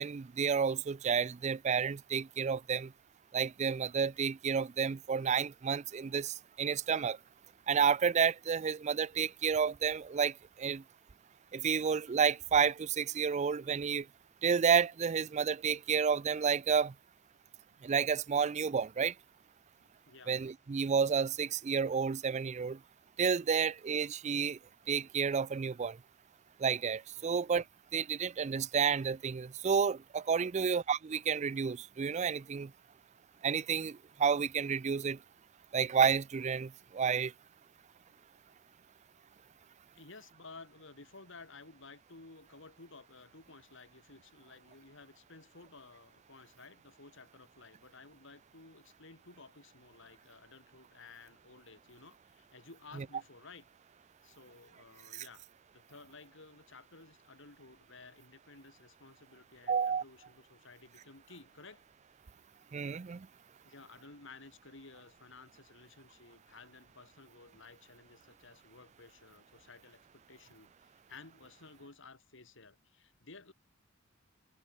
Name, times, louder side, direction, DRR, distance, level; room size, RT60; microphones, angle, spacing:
voice 1, 0.0-2.9 3.3-7.2 7.7-10.8 11.5-14.1 14.4-16.9 17.8-19.1 20.3-22.8 23.2-24.6 24.9-26.0 26.6-27.6 27.9-32.7 33.4-35.2 35.7-37.3 55.1-55.2 59.7-60.0 62.7-63.3, right 6 dB, 35° right, 0.4 m, -30 dB
voice 2, 19.8-20.3 27.2-27.3 39.9-53.6 54.2-55.5 55.7-61.8 63.6-73.5, left 3 dB, 65° left, 2.5 m, -55 dB
head